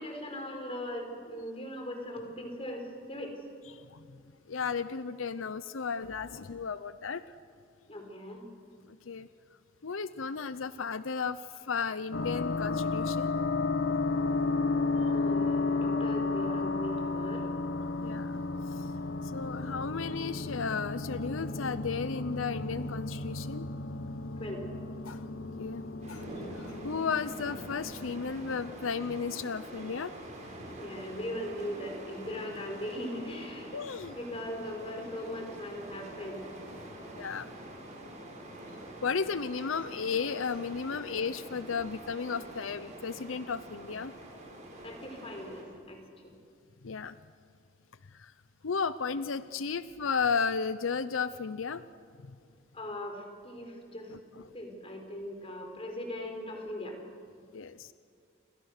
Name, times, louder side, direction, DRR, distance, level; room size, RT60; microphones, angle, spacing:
voice 1, 0.0-3.3 7.9-8.4 15.1-17.5 24.4-24.6 30.8-36.5 44.8-46.3 52.7-54.1 54.5-57.0, left 1 dB, 30° left, 3 dB, 4.7 m, -39 dB
voice 2, 3.7-4.1 4.5-7.2 9.0-9.3 9.8-13.3 18.0-18.9 19.2-23.7 25.0-25.3 25.6-25.8 26.1-26.3 26.5-30.5 33.7-34.1 37.2-37.5 39.0-44.1 46.8-47.2 48.1-48.3 48.6-51.8 52.2-52.4 57.5-57.9, left 5 dB, 85° left, 14 dB, 0.7 m, -34 dB
sound 1, 12.1-28.6, left 3 dB, 60° left, 1.1 m, -33 dB
sound 2, 26.0-45.6, right 1 dB, 35° right, 5.9 m, -46 dB
29.5 x 26.0 x 6.6 m, 2.3 s
head